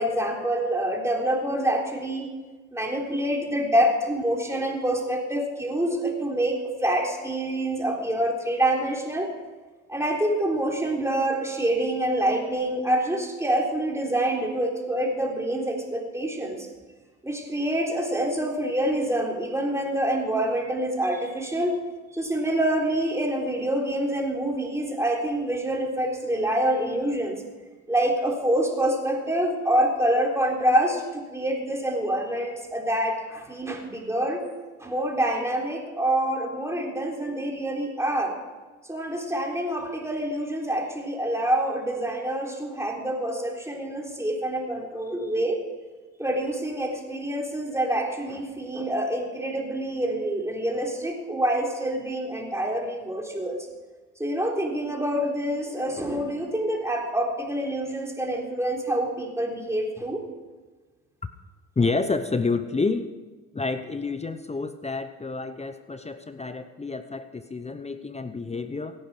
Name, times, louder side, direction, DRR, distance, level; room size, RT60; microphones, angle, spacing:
voice 1, 0.0-2.3 2.7-9.3 9.9-16.7 17.2-21.8 22.1-27.4 27.9-34.4 34.8-38.4 38.9-45.6 46.2-53.6 54.2-60.2, right 1 dB, 5° right, 0 dB, 3.6 m, -26 dB
voice 2, 61.8-63.1 63.5-68.9, left 4 dB, 15° left, 10 dB, 0.8 m, -29 dB
17.0 x 10.5 x 5.0 m, 1.3 s
supercardioid pair, 70°, 38 cm